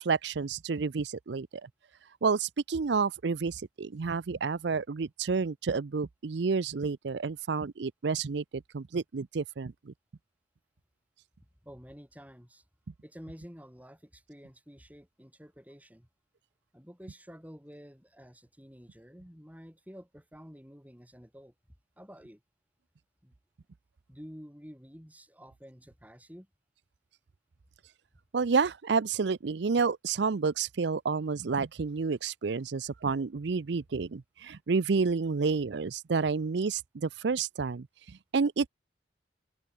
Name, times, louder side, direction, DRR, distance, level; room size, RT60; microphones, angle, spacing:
voice 1, 0.0-1.7 2.2-9.9 28.3-38.7, right 5 dB, 65° right, 0.5 m, -30 dB
voice 2, 11.6-12.6 13.0-16.1 16.7-21.5 22.0-22.4 23.2-23.3 24.1-26.5, equal, 10° right, 7.5 m, -50 dB
open air
head